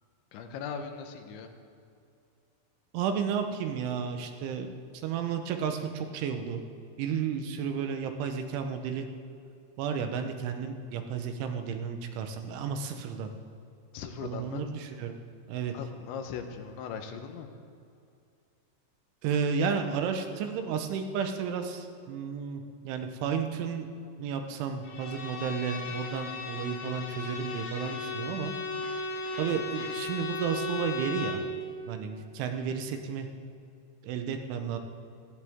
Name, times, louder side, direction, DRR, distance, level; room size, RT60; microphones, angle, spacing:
voice 1, 0.3-1.5 13.9-14.7 15.7-17.5 32.4-32.5, left 6 dB, 80° left, 5 dB, 3.3 m, -39 dB
voice 2, 2.9-6.6 7.0-9.1 9.8-13.3 14.2-15.2 15.5-15.7 19.2-23.9 24.2-28.6 29.4-31.4 31.9-33.3 34.0-34.8, right 7 dB, 85° right, 6 dB, 3.5 m, -32 dB
Bowed string instrument, 24.8-31.5, left 3 dB, 50° left, 3.1 m, -36 dB
18.0 x 15.0 x 3.7 m, 2.5 s
omnidirectional pair, 5.3 m